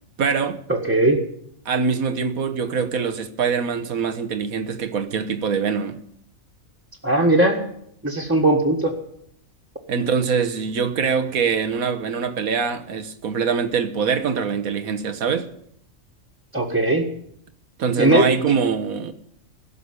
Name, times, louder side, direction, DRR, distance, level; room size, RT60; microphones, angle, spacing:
voice 1, 0.2-0.6 1.6-6.0 9.9-15.5 17.8-19.1, right 6 dB, 85° right, 1.6 m, -23 dB
voice 2, 0.7-1.2 7.0-7.6 8.0-8.9 16.5-17.0 18.0-18.3, right 1 dB, 10° right, 1.5 m, -18 dB
16.5 x 6.9 x 9.7 m
omnidirectional pair, 1.4 m